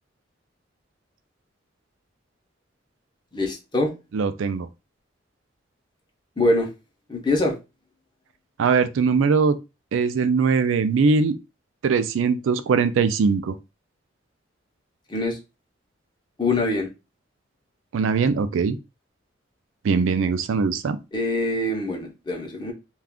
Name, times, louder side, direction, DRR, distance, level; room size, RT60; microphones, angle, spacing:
voice 1, 3.3-3.9 6.4-6.7 7.1-7.6 15.1-15.4 16.4-16.9 21.1-22.7, left 2 dB, 25° left, 0.6 m, -24 dB
voice 2, 4.1-4.7 8.6-9.6 9.9-11.3 11.8-13.6 17.9-18.8 19.8-21.0, right 5 dB, 90° right, 0.4 m, -21 dB
2.4 x 2.3 x 3.5 m
head